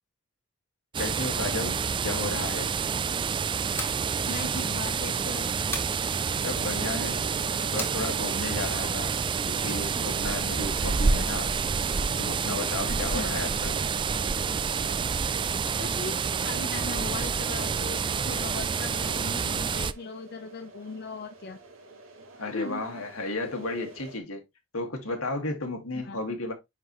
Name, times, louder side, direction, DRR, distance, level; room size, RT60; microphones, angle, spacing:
sound 1, 0.9-19.9, right 5 dB, 25° right, 0.3 m, -28 dB
voice 1, 1.0-2.8 6.4-7.2 7.7-9.1 9.5-11.5 12.2-13.8 22.4-24.4 24.7-26.5, left 2 dB, 80° left, 2.1 m, -33 dB
sound 2, 3.7-4.0 5.7-6.0 7.8-8.0, left 3 dB, 10° left, 1.7 m, -35 dB
voice 2, 4.3-5.5 10.8-11.3 12.9-13.4 15.8-18.0 18.2-21.6 22.4-22.8 26.0-26.2, left 3 dB, 50° left, 0.7 m, -38 dB
sound 3, 6.5-24.2, right 2 dB, 65° right, 1.8 m, -46 dB
9.7 x 4.1 x 3.1 m
head